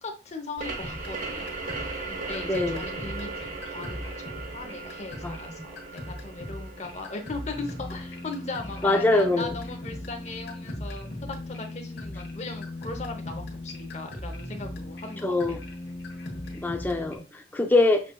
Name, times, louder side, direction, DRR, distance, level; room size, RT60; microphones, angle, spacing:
voice 1, 0.0-1.5 2.0-15.6, left 3 dB, 40° left, 0.7 m, -38 dB
sound 1, 0.6-17.2, left 1 dB, 70° left, 1.2 m, -39 dB
sound 2, 0.6-9.9, right 3 dB, 45° right, 0.7 m, -38 dB
voice 2, 2.5-2.8 5.2-5.4 8.8-9.5 15.2-15.6 16.5-18.0, left 2 dB, 10° left, 0.3 m, -23 dB
6.6 x 2.4 x 2.2 m
head